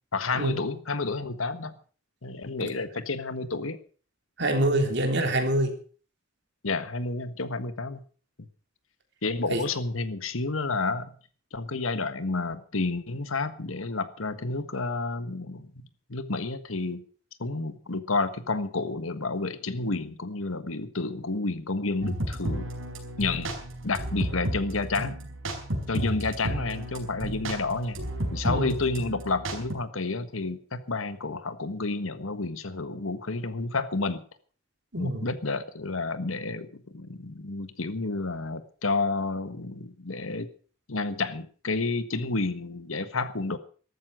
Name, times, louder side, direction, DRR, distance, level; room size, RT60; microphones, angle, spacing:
voice 1, 0.1-1.7 2.2-3.8 6.6-8.0 8.4-8.5 9.2-11.1 11.5-15.8 16.1-17.0 17.4-22.7 23.2-23.5 23.8-25.2 25.9-28.0 28.3-34.2 35.0-40.5 40.9-43.6, left 3 dB, 90° left, 12 dB, 1.5 m, -30 dB
voice 2, 4.4-5.7 9.5-9.6 28.5-28.7 34.9-35.3, right 1 dB, 60° right, 5 dB, 3.4 m, -25 dB
sound 1, 22.0-29.7, right 1 dB, 75° right, 5.4 m, -33 dB
14.0 x 13.0 x 6.3 m, 0.42 s
head